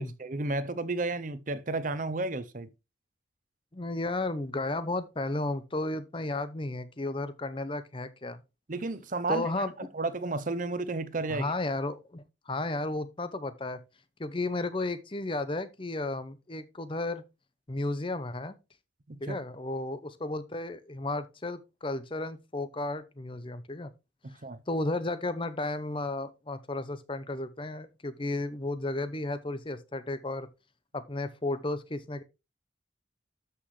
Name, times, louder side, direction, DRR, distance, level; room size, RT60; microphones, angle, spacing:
voice 1, 0.0-2.7 8.7-9.6 9.9-11.5 19.1-19.4 24.4-24.6, right 2 dB, 40° right, 0.7 m, -32 dB
voice 2, 3.7-8.4 9.3-9.7 11.3-13.8 14.2-17.2 17.7-18.5 19.2-23.9 24.7-30.5 30.9-32.2, left 2 dB, 25° left, 0.7 m, -33 dB
12.5 x 5.9 x 3.2 m
head